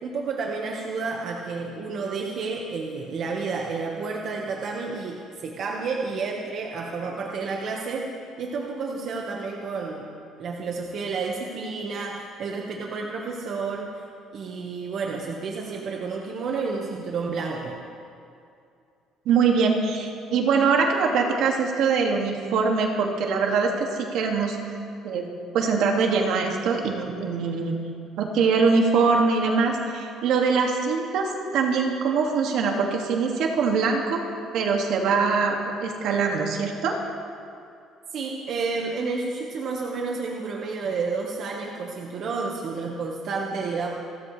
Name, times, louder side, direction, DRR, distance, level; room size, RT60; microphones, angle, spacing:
voice 1, 0.0-8.1 8.4-13.9 14.3-17.8 38.1-43.9, right 4 dB, 50° right, 0 dB, 1.5 m, -30 dB
voice 2, 19.3-24.6 25.0-25.3 25.5-27.7 28.2-34.2 34.5-37.0, right 5 dB, 70° right, 1 dB, 2.1 m, -23 dB
28.5 x 13.5 x 3.3 m, 2.4 s
cardioid pair, 145°, 0 cm